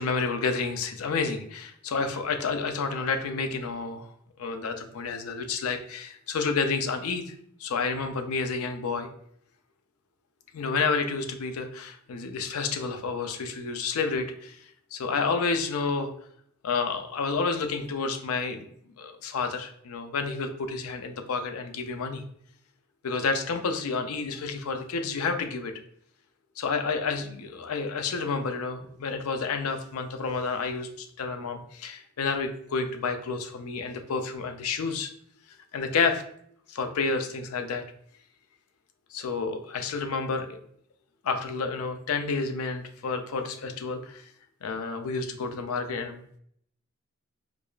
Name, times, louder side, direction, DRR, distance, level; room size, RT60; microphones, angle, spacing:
voice 1, 0.0-4.1 4.4-7.3 7.6-9.1 10.5-14.6 14.9-16.1 16.6-18.7 19.0-22.2 23.0-25.7 26.6-35.1 35.7-36.2 36.7-37.8 39.1-40.6 41.2-44.3 44.6-46.4, left 4 dB, 85° left, 7 dB, 0.5 m, -30 dB
4.7 x 2.3 x 2.3 m, 0.67 s
head